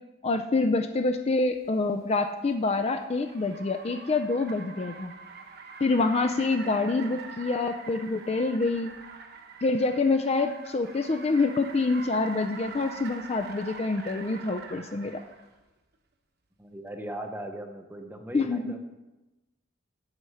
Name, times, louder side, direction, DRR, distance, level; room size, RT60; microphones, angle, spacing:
voice 1, 0.2-5.1 5.8-9.0 9.6-15.2 18.3-18.7, left 3 dB, 30° left, 6 dB, 0.4 m, -26 dB
Car, 1.6-15.5, right 5 dB, 50° right, 1.0 m, -45 dB
voice 2, 16.6-18.8, right 1 dB, 10° right, 5 dB, 0.7 m, -38 dB
8.4 x 7.9 x 5.6 m, 1.1 s
head